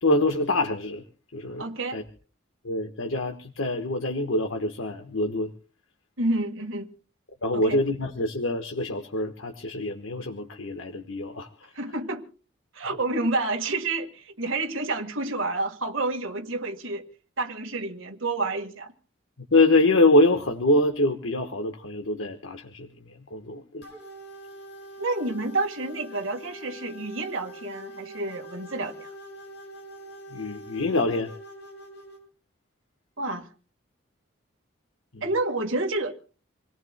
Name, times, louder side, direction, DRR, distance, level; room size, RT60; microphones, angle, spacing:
voice 1, 0.0-1.0 1.3-1.7 1.9-2.0 2.6-5.5 7.4-11.7 19.5-23.9 30.3-31.3 35.1-35.2, left 2 dB, 80° left, 1.3 m, -25 dB
voice 2, 1.6-2.0 6.2-6.9 7.5-7.8 11.8-12.2 12.7-17.0 17.4-18.9 25.0-29.1 33.2-33.5 35.2-36.1, right 2 dB, 80° right, 1.7 m, -29 dB
sound 1, 23.8-32.2, right 1 dB, 55° left, 7.1 m, -44 dB
27.5 x 18.0 x 2.2 m
head